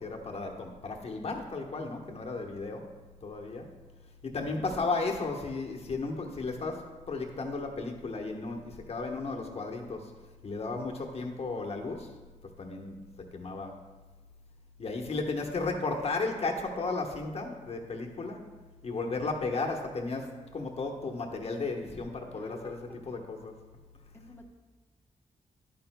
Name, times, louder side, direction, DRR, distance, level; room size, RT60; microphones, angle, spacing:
voice 1, 0.0-2.8 3.2-3.7 4.2-10.1 10.4-12.1 12.6-13.0 13.3-13.7 14.8-18.4 18.8-23.5, left 3 dB, 50° left, 2 dB, 1.1 m, -34 dB
voice 2, 4.4-5.1 22.3-23.0 24.1-24.4, left 1 dB, 15° left, 1 dB, 1.0 m, -50 dB
11.0 x 9.0 x 2.2 m, 1.3 s
cardioid pair, 100°, 13 cm